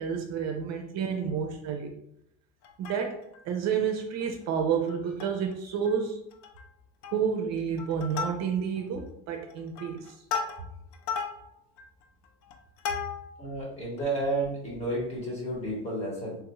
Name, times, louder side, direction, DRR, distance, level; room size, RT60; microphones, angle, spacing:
voice 1, 0.0-1.9 2.8-3.2 3.4-6.2 7.1-10.0, right 7 dB, 60° right, 4 dB, 0.5 m, -30 dB
Plucked string instrument, 2.6-3.4 3.9-4.0 4.2-4.4 4.9-5.5 5.9-6.0 6.3-6.7 7.0-7.4 7.8-8.8 9.4-13.5 14.0-14.1, left 6 dB, 60° left, 0.5 m, -36 dB
voice 2, 13.4-16.4, right 1 dB, 20° left, -5 dB, 1.2 m, -31 dB
3.3 x 2.3 x 3.0 m, 0.74 s
cardioid pair, 160°, 31 cm